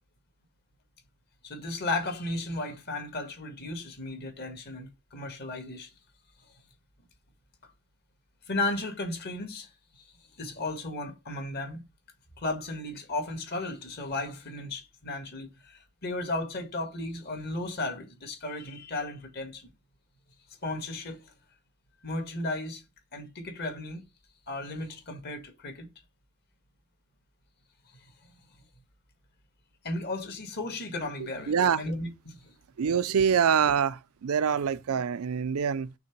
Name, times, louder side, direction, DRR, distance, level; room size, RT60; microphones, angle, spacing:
voice 1, 1.4-5.9 8.5-9.7 9.9-10.0 10.4-11.8 12.4-19.7 20.6-21.3 22.0-22.8 23.1-24.0 24.5-25.9 29.8-32.5, left 2 dB, 45° left, 1.7 m, -35 dB
voice 2, 31.5-31.8 32.8-35.9, right 7 dB, 70° right, 0.4 m, -25 dB
5.9 x 3.4 x 5.9 m
head